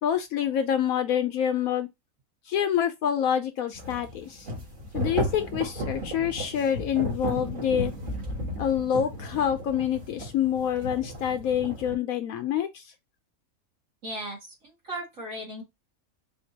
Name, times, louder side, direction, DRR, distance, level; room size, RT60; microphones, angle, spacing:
voice 1, 0.0-1.9 2.5-4.5 4.9-7.9 8.6-12.9, left 9 dB, 75° left, 1.0 m, -27 dB
sound 1, 3.7-11.9, right 1 dB, 35° right, 1.5 m, -34 dB
voice 2, 14.0-15.6, right 1 dB, 60° right, 2.3 m, -37 dB
5.8 x 2.8 x 2.7 m
omnidirectional pair, 1.6 m